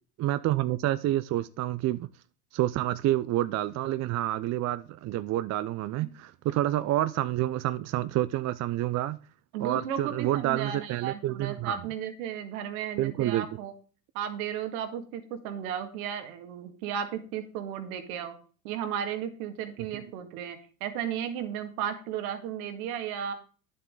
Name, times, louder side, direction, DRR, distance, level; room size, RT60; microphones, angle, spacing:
voice 1, 0.2-2.1 2.5-9.2 9.6-11.8 13.0-13.4, right 14 dB, 35° right, 0.5 m, -28 dB
voice 2, 9.5-13.7 14.1-18.3 18.6-23.3, right 9 dB, 70° right, 2.1 m, -34 dB
10.0 x 7.6 x 3.8 m
hypercardioid pair, 80°, 45 cm